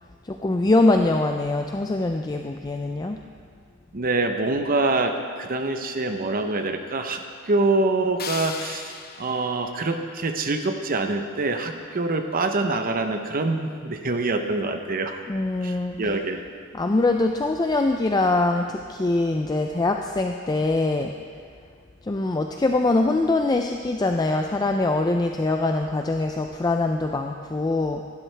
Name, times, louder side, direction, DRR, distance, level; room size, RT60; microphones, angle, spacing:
voice 1, 0.2-3.2 15.3-16.0 16.7-21.1 22.0-28.0, left 2 dB, 20° left, 4 dB, 0.4 m, -23 dB
voice 2, 3.9-7.2 7.5-8.9 9.2-15.2 15.6-16.4, right 2 dB, 45° right, 6 dB, 0.8 m, -25 dB
sound 1, 8.2-11.2, left 6 dB, 45° left, 0.8 m, -39 dB
15.0 x 12.0 x 3.3 m, 2.2 s
head